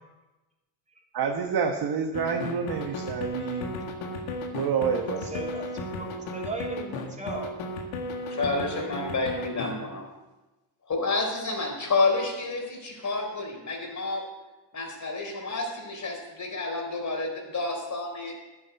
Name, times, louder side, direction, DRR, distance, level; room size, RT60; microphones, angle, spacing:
voice 1, 1.1-3.7 4.5-5.3, right 6 dB, 50° right, 3 dB, 1.4 m, -28 dB
sound 1, 2.1-9.7, left 2 dB, 85° left, 1.9 m, -34 dB
voice 2, 5.2-5.7 6.0-7.5, right 2 dB, 15° right, -1 dB, 3.2 m, -36 dB
voice 3, 8.3-10.1 10.9-14.2 14.7-18.3, left 3 dB, 35° left, 2 dB, 4.3 m, -29 dB
10.5 x 8.6 x 7.0 m, 1.1 s
supercardioid pair, 75°, 47 cm